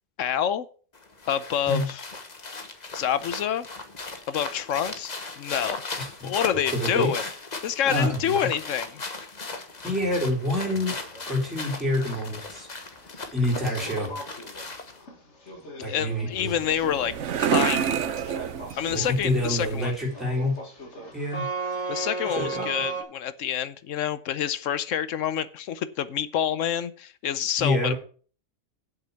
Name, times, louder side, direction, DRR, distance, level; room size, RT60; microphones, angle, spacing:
voice 1, 0.2-0.7 1.3-2.0 2.9-3.7 4.3-5.8 6.2-7.2 7.6-9.0 15.8-17.1 17.4-18.3 18.8-20.0 21.9-27.9, left 9 dB, 75° left, 15 dB, 1.0 m, -27 dB
sound 1, 0.9-15.0, left 3 dB, 35° left, 1.2 m, -37 dB
voice 2, 6.0-6.3 6.7-7.3 7.9-8.5 9.8-10.9 11.3-12.7 13.3-14.1 15.8-16.5 18.9-20.6 21.1-21.5 22.4-22.7 27.6-27.9, left 1 dB, ahead, -4 dB, 3.9 m, -27 dB
sound 2, 9.8-23.0, right 3 dB, 60° left, 2.3 m, -38 dB
sound 3, 16.3-19.9, right 8 dB, 65° right, 1.1 m, -29 dB
8.3 x 6.7 x 7.1 m, 0.42 s
omnidirectional pair, 1.4 m